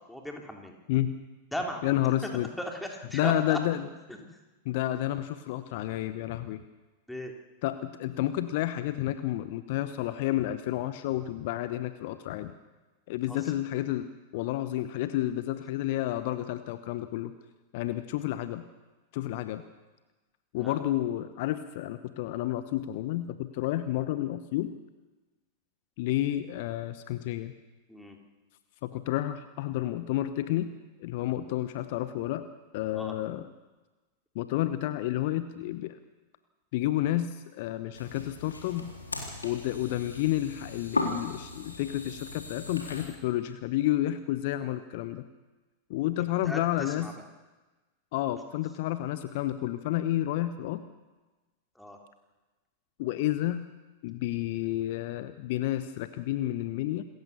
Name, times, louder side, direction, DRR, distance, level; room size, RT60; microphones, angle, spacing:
voice 1, 0.1-0.8 1.5-2.3 2.6-3.6 4.1-4.2 7.1-7.3 13.3-13.5 20.5-20.8 27.9-28.2 32.9-33.2 46.4-47.1 51.7-52.0, equal, 5° left, 2 dB, 3.4 m, -37 dB
voice 2, 0.9-1.2 1.8-2.5 3.1-3.9 4.6-6.6 7.6-12.5 13.1-17.3 17.7-18.6 19.1-19.6 20.5-24.7 26.0-27.5 28.8-30.7 31.0-32.4 32.7-33.5 34.3-36.0 36.7-38.9 39.4-45.2 45.9-47.1 48.1-50.8 53.0-53.7 54.0-57.0, left 14 dB, 50° left, 12 dB, 0.9 m, -30 dB
sound 1, 37.9-43.1, left 2 dB, 85° left, 3.7 m, -37 dB
27.0 x 15.0 x 6.9 m, 1.2 s
figure-of-eight pair, 90°, 0 cm